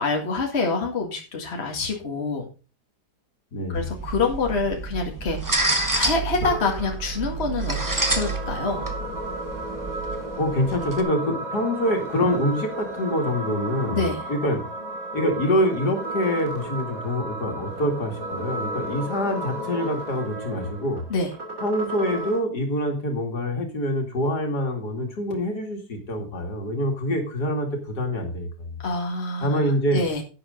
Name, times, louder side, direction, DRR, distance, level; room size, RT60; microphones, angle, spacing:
voice 1, 0.0-2.5 3.7-7.8 8.1-8.9 13.9-14.3 21.1-21.3 28.8-30.2, left 3 dB, 40° left, 1 dB, 2.2 m, -26 dB
voice 2, 3.5-3.9 10.4-14.0 14.3-14.6 15.1-21.0 21.6-28.9 29.4-30.0, equal, 75° left, 3 dB, 2.8 m, -25 dB
sound 1, 3.7-11.0, right 2 dB, 15° right, 0.9 m, -29 dB
sound 2, 6.4-22.4, right 1 dB, 55° right, 3.1 m, -34 dB
11.0 x 8.7 x 3.8 m, 0.33 s
omnidirectional pair, 1.7 m